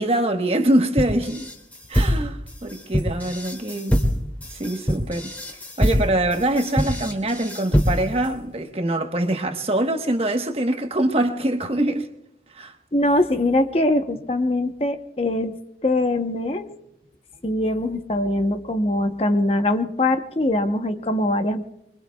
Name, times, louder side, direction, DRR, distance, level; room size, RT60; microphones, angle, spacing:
voice 1, 0.0-1.5 1.9-4.0 4.5-12.1 12.5-12.7, right 1 dB, 35° right, 1.1 m, -24 dB
sound 1, 1.0-8.3, equal, 10° left, 2.2 m, -24 dB
voice 2, 12.9-15.6 15.8-16.7 17.4-21.6, left 1 dB, 35° left, 0.8 m, -22 dB
25.0 x 23.5 x 2.3 m
head